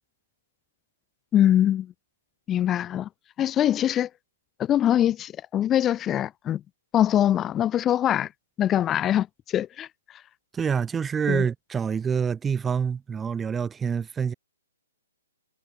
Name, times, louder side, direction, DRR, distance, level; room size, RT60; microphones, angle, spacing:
voice 1, 1.3-1.9 2.5-3.1 3.4-4.1 4.6-6.6 6.9-8.3 8.6-9.9 11.3-11.4, left 11 dB, 20° left, 1.2 m, -23 dB
voice 2, 10.5-14.3, right 6 dB, 10° right, 1.7 m, -26 dB
figure-of-eight pair, 130°, 0 cm